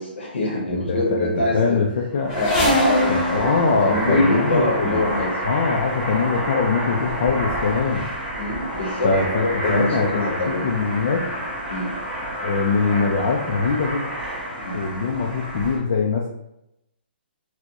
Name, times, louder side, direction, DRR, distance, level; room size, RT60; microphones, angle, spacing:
voice 1, 0.0-1.8 2.3-5.4 8.3-10.7 11.7-11.9 14.6-14.9, left 1 dB, 90° left, -3 dB, 0.9 m, -24 dB
voice 2, 0.7-2.4 3.1-8.1 9.0-11.2 12.4-14.0 14.7-16.3, left 4 dB, 45° left, -1 dB, 0.4 m, -23 dB
sound 1, 2.1-15.8, right 1 dB, 10° right, 0.8 m, -29 dB
sound 2, 2.3-4.8 5.8-6.0 6.7-6.8 7.1-7.9 8.3-8.8 9.5-9.6 9.9-10.0, left 1 dB, 25° left, 0.8 m, -25 dB
4.2 x 2.1 x 2.9 m, 0.84 s
hypercardioid pair, 170°, 6 cm